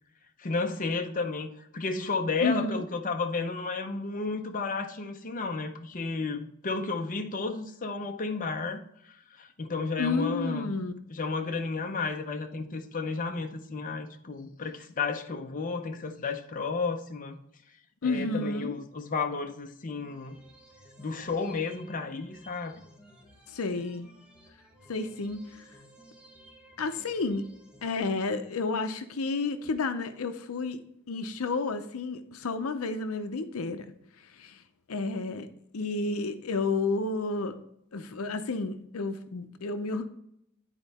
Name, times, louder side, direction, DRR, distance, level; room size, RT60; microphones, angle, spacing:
voice 1, 0.4-10.7 11.1-17.4 18.0-20.4 21.0-22.7, left 4 dB, 40° left, 5 dB, 0.6 m, -32 dB
voice 2, 2.4-2.8 10.0-10.9 18.0-18.7 23.5-24.1 24.9-25.6 26.8-27.5 27.8-30.8 31.1-33.9 34.2-34.6 34.9-35.5 35.7-37.6 37.9-40.0, left 3 dB, 75° left, 9 dB, 0.6 m, -31 dB
sound 1, 20.0-28.0, right 1 dB, 5° right, 1.3 m, -55 dB
10.0 x 4.4 x 4.1 m, 0.75 s
head